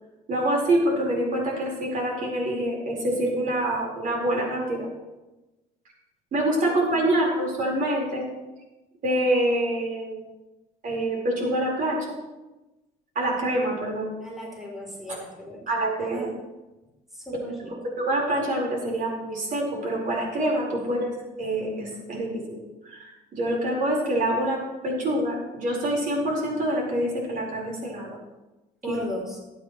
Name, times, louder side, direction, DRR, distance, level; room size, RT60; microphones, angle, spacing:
voice 1, 0.3-4.9 6.3-8.2 9.0-10.2 10.8-12.0 13.1-14.1 15.7-16.3 18.0-21.1 21.4-28.2 28.9-29.0, right 1 dB, 55° right, -2 dB, 4.6 m, -26 dB
voice 2, 6.6-7.2 14.2-15.6 16.0-16.3 17.1-17.9 20.8-21.1 28.8-29.4, right 1 dB, ahead, -3 dB, 3.7 m, -37 dB
18.5 x 8.7 x 3.2 m, 1.1 s
cardioid pair, 110°, 17 cm